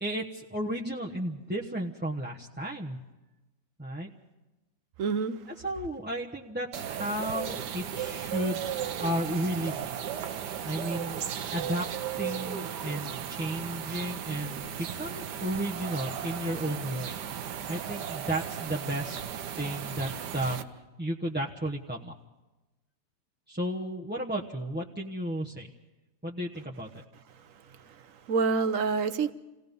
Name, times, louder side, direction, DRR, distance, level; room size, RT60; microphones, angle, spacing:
voice 1, 0.0-3.0 3.8-4.1 5.6-8.6 9.0-9.9 10.6-11.2 11.5-11.9 12.2-17.1 17.7-19.2 19.6-20.6 21.0-22.1 23.5-25.7 26.2-26.9, right 1 dB, 10° right, -4 dB, 0.9 m, -33 dB
voice 2, 5.0-5.4 27.8-29.3, right 5 dB, 55° right, 12 dB, 1.2 m, -28 dB
sound 1, 6.7-20.6, right 9 dB, 75° right, 1.5 m, -36 dB
28.5 x 17.5 x 5.4 m, 1.1 s
omnidirectional pair, 1.8 m